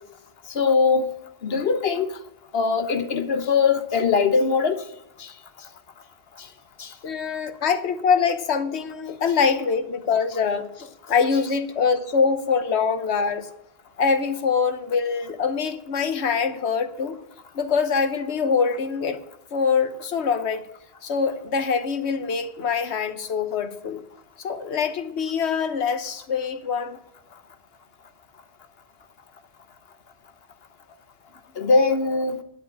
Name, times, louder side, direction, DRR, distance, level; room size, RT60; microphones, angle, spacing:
voice 1, 0.5-1.1 1.4-2.1 2.5-4.8 5.2-5.3 6.4-6.5 6.8-6.9 31.6-32.4, left 4 dB, 65° left, 1.2 m, -21 dB
voice 2, 7.0-13.5 14.0-17.2 17.5-19.2 19.5-20.7 21.0-24.0 24.4-27.0, left 5 dB, 85° left, 1.3 m, -24 dB
10.0 x 8.0 x 8.9 m
omnidirectional pair, 1.1 m